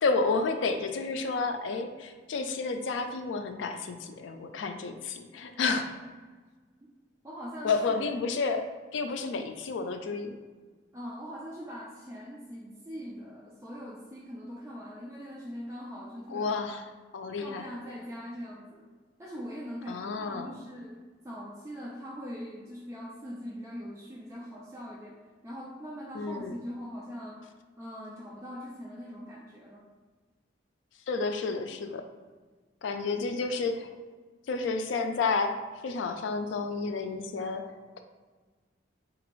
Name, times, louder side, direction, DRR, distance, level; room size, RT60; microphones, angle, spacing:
voice 1, 0.0-5.9 7.6-10.3 16.3-16.8 17.1-17.7 19.9-20.5 26.1-26.6 31.1-32.0 32.8-33.9 34.5-35.6 35.8-37.7, left 4 dB, 75° left, 6 dB, 0.4 m, -30 dB
voice 2, 7.2-8.3 10.9-16.5 17.4-18.9 19.2-27.5 27.8-29.9, equal, 15° right, -4 dB, 0.3 m, -42 dB
3.9 x 2.5 x 3.0 m, 1.4 s
head